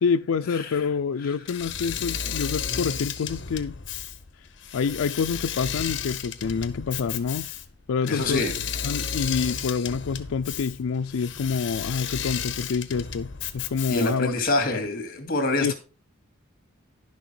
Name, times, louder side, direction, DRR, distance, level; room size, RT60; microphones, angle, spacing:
voice 1, 0.0-3.8 4.7-7.5 7.9-8.4 8.8-14.3 14.7-14.8 15.6-15.7, left 5 dB, 90° left, 0.4 m, -27 dB
Engine / Mechanisms, 1.5-14.3, left 7 dB, 60° left, 1.0 m, -33 dB
voice 2, 8.1-8.5 13.9-15.7, left 2 dB, 45° left, 2.2 m, -26 dB
11.0 x 6.6 x 4.5 m
head